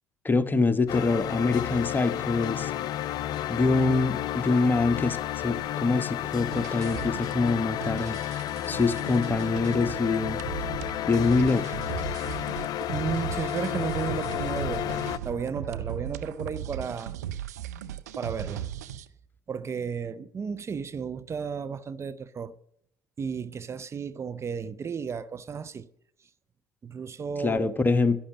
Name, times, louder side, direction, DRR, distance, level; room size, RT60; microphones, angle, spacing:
voice 1, 0.2-2.7 3.5-8.2 8.7-10.4 11.1-11.8 27.4-28.2, left 3 dB, 20° left, 1.2 m, -25 dB
sound 1, 0.9-15.2, left 12 dB, 50° left, 0.4 m, -32 dB
sound 2, 6.5-19.1, right 11 dB, 80° right, 0.6 m, -37 dB
voice 2, 12.9-15.0 15.2-17.1 18.2-18.7 19.5-22.6 23.2-25.9 26.8-27.7, right 6 dB, 30° right, 0.6 m, -33 dB
11.5 x 11.0 x 7.4 m
figure-of-eight pair, 60°, 9 cm